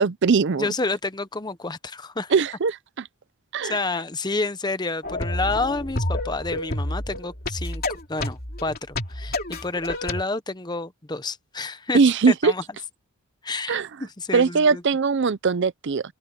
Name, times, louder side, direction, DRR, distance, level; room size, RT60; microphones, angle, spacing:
voice 1, 0.0-0.7 2.3-3.1 3.5-3.8 11.9-12.5 13.7-13.9 14.3-16.1, right 5 dB, 50° right, 0.5 m, -20 dB
voice 2, 0.6-2.3 3.6-7.8 8.1-12.0 12.3-12.6 13.4-14.8, left 3 dB, 20° left, 0.8 m, -29 dB
sound 1, 5.0-10.2, left 1 dB, 40° left, 3.1 m, -29 dB
head